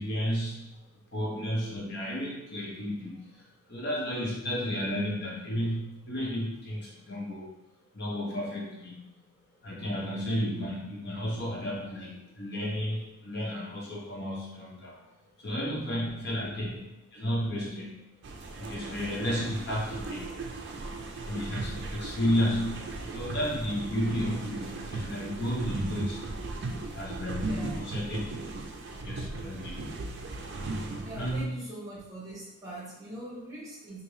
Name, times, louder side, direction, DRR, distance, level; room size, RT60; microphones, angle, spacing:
voice 1, 0.0-7.6 7.9-9.1 9.6-18.2 18.6-20.4 21.3-26.4 26.9-28.2 29.0-29.9 31.1-31.6, equal, 50° left, -4 dB, 0.9 m, -33 dB
sound 1, 18.2-31.4, right 2 dB, 55° right, 0.4 m, -37 dB
voice 2, 18.4-18.9 27.4-27.8 31.0-34.0, right 1 dB, 15° right, -7 dB, 1.0 m, -43 dB
3.6 x 2.6 x 3.1 m, 0.91 s
head